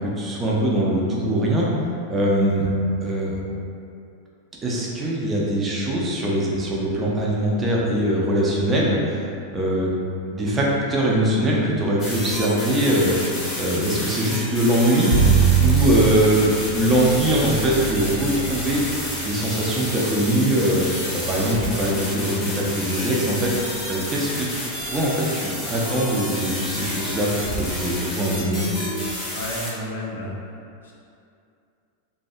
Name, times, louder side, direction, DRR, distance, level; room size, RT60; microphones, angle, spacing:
voice 1, 0.0-1.7 2.1-2.7 3.0-3.4 4.6-9.9 10.3-15.1 15.6-18.8 19.2-20.9 21.3-24.5 24.8-28.7, right 1 dB, 20° right, -4 dB, 0.4 m, -22 dB
sound 1, 12.0-29.7, left 1 dB, 25° left, 0.8 m, -30 dB
Bowed string instrument, 15.1-21.2, right 6 dB, 65° right, 1.1 m, -24 dB
voice 2, 29.3-30.9, left 1 dB, 70° left, -3 dB, 0.4 m, -32 dB
2.6 x 2.1 x 2.4 m, 2.5 s
figure-of-eight pair, 90°, 0 cm